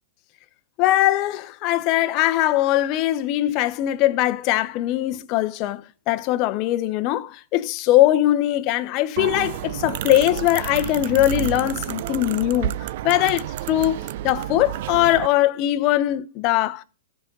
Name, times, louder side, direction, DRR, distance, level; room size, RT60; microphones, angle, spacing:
voice 1, 0.8-16.8, left 14 dB, 40° left, 0.8 m, -21 dB
sound 1, 9.2-15.3, right 13 dB, 55° right, 0.5 m, -30 dB
14.5 x 6.1 x 3.8 m
hypercardioid pair, 140°, 0 cm